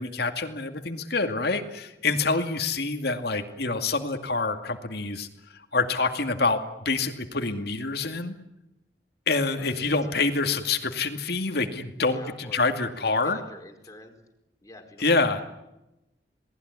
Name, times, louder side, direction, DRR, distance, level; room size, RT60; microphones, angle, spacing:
voice 1, 0.0-8.4 9.3-13.4 15.0-15.4, left 3 dB, 60° left, 6 dB, 2.4 m, -26 dB
voice 2, 9.5-9.9 12.0-14.1 14.6-15.4, left 1 dB, 20° left, 4 dB, 4.5 m, -47 dB
28.0 x 19.5 x 9.7 m, 0.94 s
head